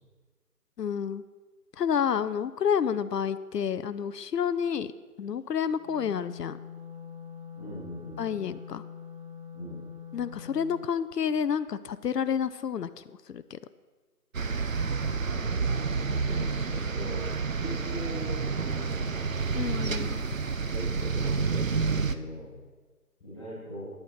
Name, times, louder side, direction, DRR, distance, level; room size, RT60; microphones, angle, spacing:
voice 1, 0.8-1.2 1.8-4.9 5.2-6.6 8.2-8.8 10.1-13.6 19.5-20.2, left 7 dB, 85° left, 14 dB, 0.6 m, -29 dB
Wind instrument woodwind instrument, 5.7-10.8, left 7 dB, 20° right, 1.8 m, -44 dB
voice 2, 7.5-8.2 9.5-9.8 15.1-17.3 17.5-19.4 20.6-22.5 23.2-23.8, equal, ahead, -10 dB, 1.9 m, -41 dB
sound 1, 14.3-22.2, right 4 dB, 55° right, 0.5 m, -29 dB
9.5 x 8.7 x 4.4 m, 1.3 s
figure-of-eight pair, 170°, 47 cm